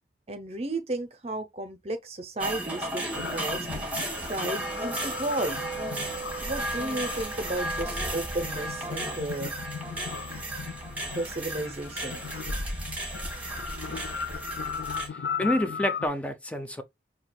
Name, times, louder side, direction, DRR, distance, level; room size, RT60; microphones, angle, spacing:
voice 1, 0.3-3.7 4.2-5.6 6.4-9.5 11.1-12.2, right 2 dB, 35° right, 0.6 m, -33 dB
sound 1, 2.4-15.1, right 1 dB, 10° right, 1.2 m, -34 dB
sound 2, 3.1-16.1, left 6 dB, 80° left, 0.4 m, -38 dB
voice 2, 15.0-16.8, left 1 dB, 5° left, 0.5 m, -29 dB
5.8 x 2.8 x 2.2 m
head